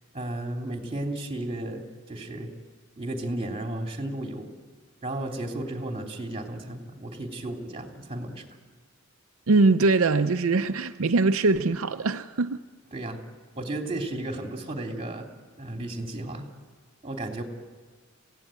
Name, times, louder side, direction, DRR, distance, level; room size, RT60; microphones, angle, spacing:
voice 1, 0.1-2.5 3.0-4.5 5.0-8.6 12.9-13.2 13.5-15.3 15.6-16.5 17.0-17.4, right 1 dB, 25° right, 3.1 m, -34 dB
voice 2, 9.5-12.6, right 3 dB, 90° right, 0.7 m, -22 dB
27.5 x 16.5 x 9.1 m
head